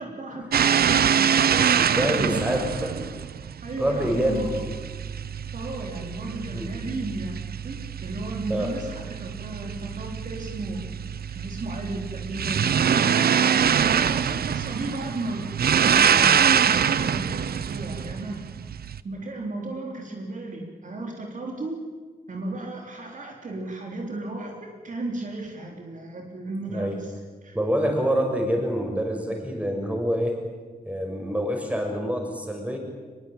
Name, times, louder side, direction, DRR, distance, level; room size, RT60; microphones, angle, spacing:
voice 1, 0.0-3.1 3.6-4.5 5.5-7.4 7.6-10.8 11.3-18.4 19.0-21.8 22.3-27.1 27.4-27.6, right 2 dB, 55° right, 1 dB, 3.7 m, -34 dB
sound 1, 0.5-19.0, right 8 dB, 85° right, 0.8 m, -24 dB
voice 2, 1.5-2.9 3.8-4.5 6.5-6.7 8.5-8.7 26.7-27.0 27.5-30.4 30.8-32.8, equal, 10° right, 2 dB, 6.0 m, -26 dB
24.5 x 21.5 x 9.0 m, 1.4 s
wide cardioid pair, 140°, 16 cm